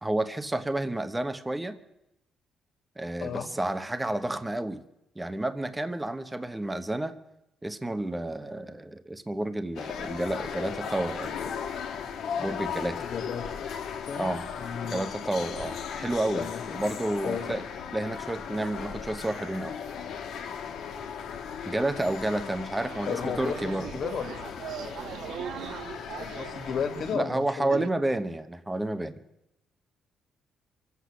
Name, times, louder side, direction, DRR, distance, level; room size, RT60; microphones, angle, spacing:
voice 1, 0.0-1.8 3.0-4.8 5.2-7.1 7.6-11.5 12.4-13.0 14.2-14.4 14.9-16.5 16.7-17.6 17.9-19.7 21.7-23.9 27.1-29.2, right 1 dB, 15° right, 10 dB, 1.0 m, -30 dB
sound 1, 9.8-27.2, left 7 dB, 80° left, 1.5 m, -37 dB
voice 2, 13.0-13.5 14.1-14.3 14.6-15.0 16.3-16.8 17.2-17.5 23.0-24.6 26.1-27.8, left 6 dB, 60° left, 6 dB, 1.9 m, -34 dB
sound 2, 22.8-27.9, right 10 dB, 70° right, 0.4 m, -40 dB
24.0 x 8.2 x 6.2 m, 0.87 s
cardioid pair, 90°, 0 cm